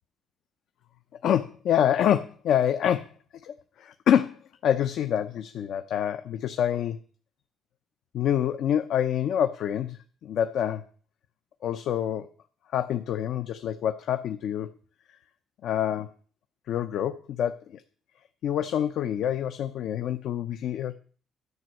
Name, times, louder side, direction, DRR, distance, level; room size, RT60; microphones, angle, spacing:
voice 1, 1.2-3.1 3.4-7.0 8.1-10.8 11.6-12.3 12.7-14.7 15.6-16.1 16.7-17.8 18.4-20.9, left 9 dB, 75° left, 9 dB, 0.6 m, -26 dB
11.0 x 6.1 x 7.6 m, 0.43 s
cardioid pair, 90°, 0 cm